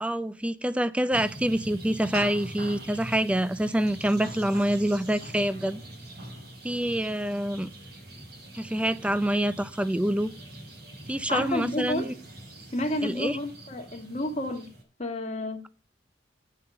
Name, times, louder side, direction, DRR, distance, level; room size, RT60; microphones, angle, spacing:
voice 1, 0.0-5.8 6.6-7.7 8.5-10.3 11.1-12.1 13.0-13.4, right 1 dB, 5° right, 0.4 m, -26 dB
sound 1, 1.1-14.8, right 1 dB, 60° right, 5.2 m, -43 dB
voice 2, 11.3-12.2 12.7-14.7 15.0-15.6, left 1 dB, 40° left, 1.6 m, -30 dB
8.5 x 5.6 x 7.8 m
head